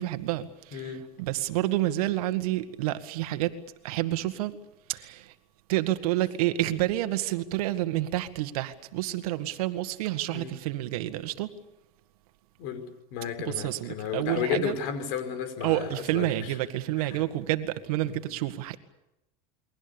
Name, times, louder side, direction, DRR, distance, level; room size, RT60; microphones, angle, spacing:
voice 1, 0.0-3.5 3.8-4.6 4.9-5.3 5.7-11.5 13.4-14.8 15.6-18.8, right 15 dB, 80° right, 1.9 m, -29 dB
voice 2, 0.7-1.0 10.3-10.5 12.6-12.8 13.1-16.5 17.0-17.3 18.0-18.2, left 8 dB, 60° left, 5.3 m, -33 dB
29.5 x 22.5 x 7.1 m
supercardioid pair, 140°, 19 cm